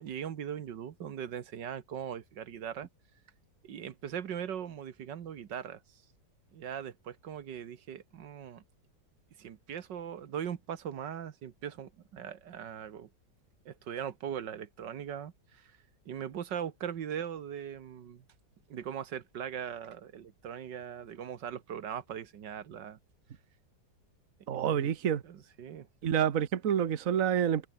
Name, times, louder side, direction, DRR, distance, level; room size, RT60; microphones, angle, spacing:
voice 1, 0.0-2.9 3.6-5.8 6.5-8.6 9.4-13.1 13.7-15.7 16.1-18.2 18.7-23.0 24.7-24.9 25.3-25.9, right 9 dB, 80° right, 1.9 m, -40 dB
voice 2, 24.5-25.2 26.0-27.7, right 9 dB, 50° right, 1.5 m, -28 dB
omnidirectional pair, 1.9 m